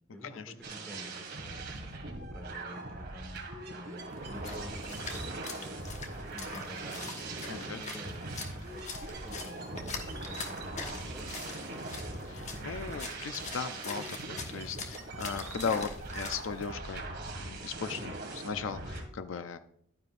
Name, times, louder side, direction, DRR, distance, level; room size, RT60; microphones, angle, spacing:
voice 1, 0.1-8.8 9.1-9.8 10.1-11.8, equal, 5° left, 0 dB, 2.1 m, -49 dB
sound 1, 0.6-19.0, right 2 dB, 60° right, 2.0 m, -41 dB
Splash splatter, 4.0-16.7, left 4 dB, 35° left, 1.2 m, -44 dB
voice 2, 7.5-7.8 12.3-17.0 17.3-19.6, left 6 dB, 70° left, 10 dB, 0.5 m, -37 dB
11.0 x 9.7 x 2.5 m, 0.66 s
head